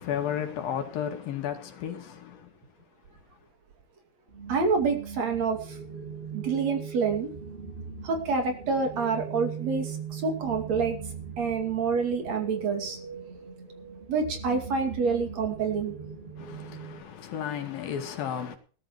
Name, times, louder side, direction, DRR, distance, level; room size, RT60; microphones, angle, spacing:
voice 1, 0.0-2.4 16.4-18.6, left 9 dB, 80° left, 3.8 m, -33 dB
sound 1, 4.3-17.0, right 6 dB, 20° right, 2.5 m, -40 dB
voice 2, 4.5-5.8 6.3-7.3 8.0-11.0 11.4-13.0 14.1-16.0, right 5 dB, 55° right, 3.4 m, -27 dB
19.5 x 13.0 x 3.1 m
omnidirectional pair, 4.0 m